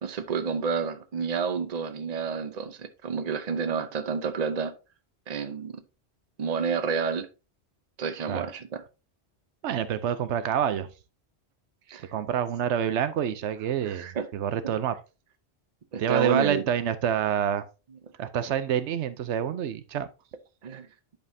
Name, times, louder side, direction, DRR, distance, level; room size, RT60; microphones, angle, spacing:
voice 1, 0.0-4.7 5.3-5.8 6.4-7.3 8.0-8.8 11.9-12.1 13.8-14.3 14.6-14.7 15.9-16.7 20.6-20.9, right 5 dB, 40° right, 0.8 m, -30 dB
voice 2, 9.6-10.9 12.1-14.9 16.0-17.6 18.2-20.1, right 9 dB, 85° right, 1.0 m, -27 dB
10.5 x 5.3 x 2.7 m
omnidirectional pair, 1.1 m